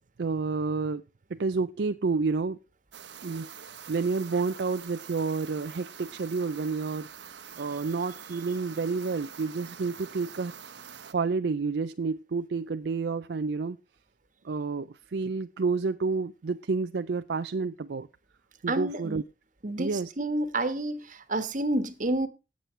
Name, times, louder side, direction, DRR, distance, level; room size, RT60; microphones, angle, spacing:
voice 1, 0.2-1.0 1.3-2.6 3.2-7.1 7.6-10.5 11.0-13.8 14.4-18.1 18.6-19.2 19.8-20.1, right 4 dB, 70° right, 0.5 m, -30 dB
sound 1, 2.9-11.1, right 7 dB, 85° right, 1.1 m, -46 dB
voice 2, 18.7-19.2 19.6-22.3, right 1 dB, 45° right, 1.4 m, -29 dB
18.5 x 7.4 x 3.3 m
head